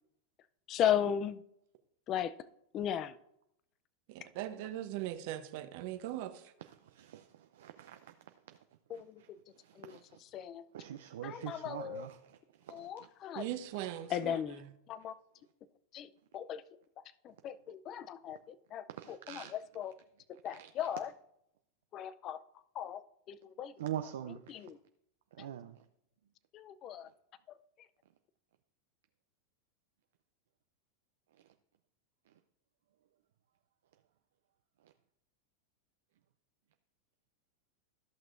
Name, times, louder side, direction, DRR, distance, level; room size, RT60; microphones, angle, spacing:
voice 1, 0.7-1.4 2.1-2.3 2.7-3.1 8.9-9.4 9.8-9.9 10.3-10.7 11.2-12.1 12.7-13.5 14.1-14.6 14.9-15.1 15.9-16.6 17.2-19.9 20.4-21.1 21.9-22.4 22.8-23.7 24.5-24.8 25.4-25.5 26.5-27.1, left 10 dB, 40° left, 0.4 m, -36 dB
voice 2, 4.1-6.5 13.3-14.4, right 13 dB, 60° right, 0.8 m, -40 dB
voice 3, 6.6-8.1 8.5-8.6 8.9-9.3 9.5-10.2 10.7-13.1 18.9-19.5 20.6-20.7 23.8-24.7 25.3-25.8, right 11 dB, 80° right, 0.5 m, -44 dB
13.5 x 6.0 x 2.6 m
hypercardioid pair, 110°, 0 cm